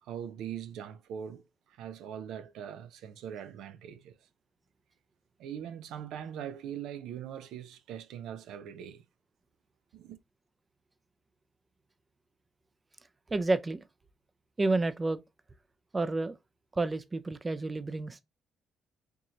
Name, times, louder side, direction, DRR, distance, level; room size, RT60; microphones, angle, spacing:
voice 1, 0.0-4.2 5.4-9.0 9.9-10.2, right 9 dB, 85° right, 0.5 m, -41 dB
voice 2, 13.3-13.8 14.6-15.2 15.9-16.3 16.7-18.2, right 2 dB, 25° right, 0.4 m, -30 dB
4.5 x 2.8 x 2.5 m
cardioid pair, 90°, 0 cm